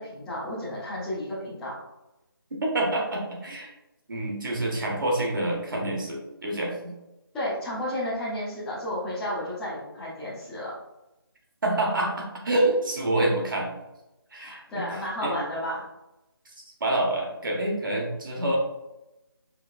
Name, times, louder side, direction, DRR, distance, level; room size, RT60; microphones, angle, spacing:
voice 1, 0.0-1.7 7.3-10.7 14.4-15.8, left 1 dB, 5° left, -13 dB, 0.6 m, -32 dB
voice 2, 2.6-3.7 4.1-6.9 11.6-13.7 14.3-14.9 15.2-15.4 16.8-18.6, right 1 dB, 55° right, -1 dB, 1.4 m, -27 dB
4.9 x 3.4 x 2.5 m, 0.95 s
figure-of-eight pair, 170°, 13 cm